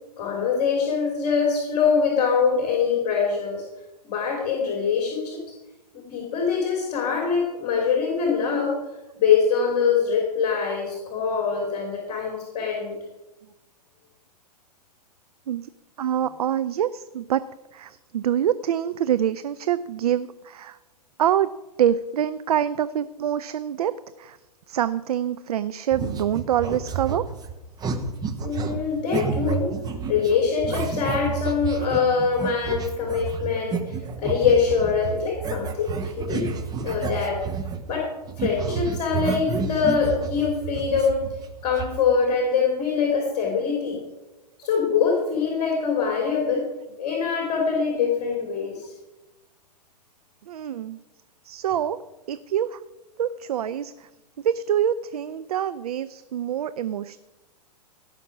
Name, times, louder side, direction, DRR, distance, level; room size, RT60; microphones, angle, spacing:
voice 1, 0.2-3.6 4.0-5.4 5.9-8.7 9.2-13.0 28.4-29.7 30.1-36.5 36.8-37.4 37.9-38.1 38.4-41.2 41.6-44.0 44.6-46.6 47.0-48.9, left 6 dB, 35° left, 0 dB, 3.1 m, -23 dB
voice 2, 16.0-17.4 17.7-20.8 21.2-21.5 21.8-23.9 24.2-24.4 24.7-27.2 50.5-51.0 51.4-52.0 52.3-52.8 53.2-54.1 54.4-57.2, right 10 dB, 65° right, 13 dB, 0.5 m, -25 dB
sound 1, 25.9-38.0 38.2-41.9, right 5 dB, 20° right, 1.2 m, -30 dB
17.0 x 5.9 x 6.1 m, 1.0 s
figure-of-eight pair, 115°, 21 cm